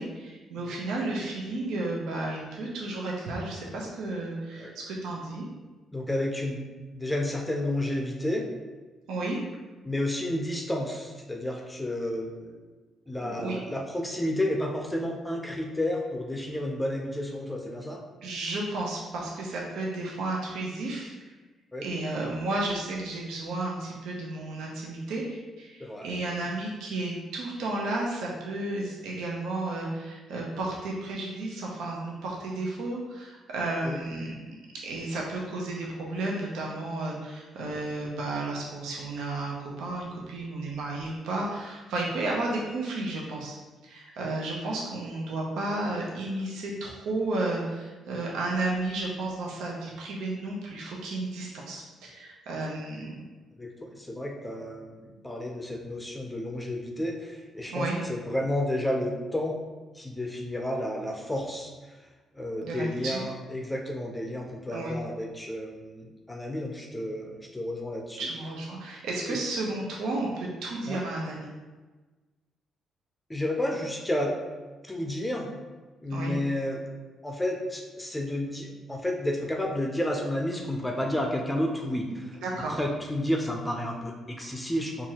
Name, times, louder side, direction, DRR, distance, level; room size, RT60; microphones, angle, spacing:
voice 1, 0.0-5.5 9.1-9.4 13.2-13.6 18.2-21.3 21.8-34.5 34.8-43.6 43.8-53.2 57.7-58.0 62.6-63.2 64.7-65.0 68.2-71.5 76.1-76.4 82.4-82.8, right 2 dB, 85° right, -2 dB, 0.6 m, -32 dB
voice 2, 5.9-6.6 6.9-8.5 9.8-12.6 13.1-18.0 21.7-21.8 25.8-26.1 33.8-34.0 53.6-59.6 59.9-62.0 62.3-68.3 69.3-69.4 70.9-71.0 73.3-74.3 74.8-75.5 76.0-76.8 77.2-82.4 82.7-85.1, left 1 dB, 10° left, 1 dB, 0.5 m, -31 dB
4.5 x 2.4 x 2.8 m, 1.2 s
cardioid pair, 90°, 0 cm